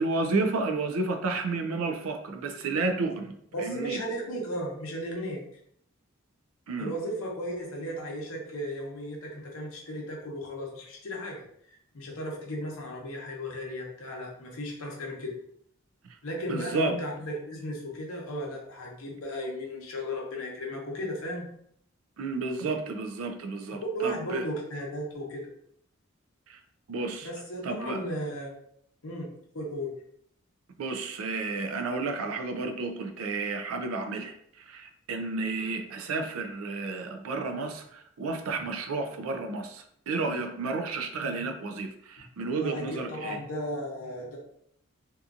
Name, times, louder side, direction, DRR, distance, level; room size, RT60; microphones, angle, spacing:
voice 1, 0.0-4.0 6.7-6.9 16.1-16.2 16.5-17.0 22.2-24.4 26.5-26.6 26.9-27.3 27.6-28.0 30.8-43.4, right 3 dB, 75° right, 6 dB, 0.4 m, -31 dB
voice 2, 3.5-5.5 6.8-11.4 11.9-15.3 16.2-21.5 23.9-25.5 27.2-28.5 29.0-29.3 29.5-29.9 42.6-44.4, equal, 75° left, -1 dB, 0.8 m, -35 dB
2.7 x 2.4 x 2.4 m, 0.68 s
head